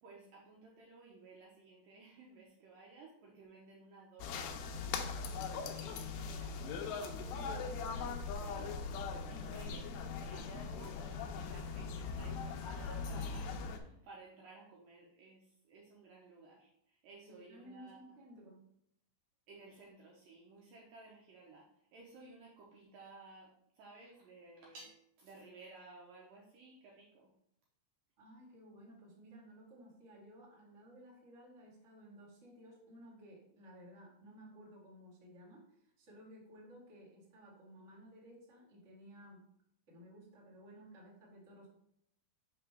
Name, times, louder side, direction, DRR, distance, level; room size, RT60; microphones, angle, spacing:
voice 1, 0.0-4.5 5.2-5.5 5.8-8.8 9.3-9.8 10.2-18.1 19.5-27.3, right 3 dB, 75° right, -2 dB, 2.1 m, -56 dB
sound 1, 4.2-13.8, left 5 dB, 80° left, 2.2 m, -40 dB
voice 2, 9.3-9.7 17.3-18.6 28.2-39.5 39.9-41.7, equal, 35° right, -6 dB, 1.2 m, -56 dB
5.8 x 5.7 x 3.3 m, 0.73 s
omnidirectional pair, 4.8 m